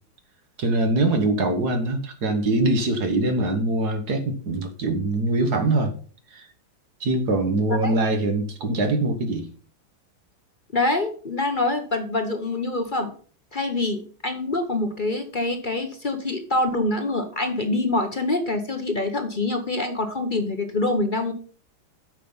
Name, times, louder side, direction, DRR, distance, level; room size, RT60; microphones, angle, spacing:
voice 1, 0.6-5.9 6.3-6.5 7.0-9.5, right 2 dB, 55° right, 6 dB, 1.9 m, -23 dB
voice 2, 10.7-13.1 13.5-21.3, left 2 dB, 35° left, 6 dB, 0.8 m, -25 dB
8.3 x 5.9 x 5.5 m, 0.42 s
omnidirectional pair, 2.1 m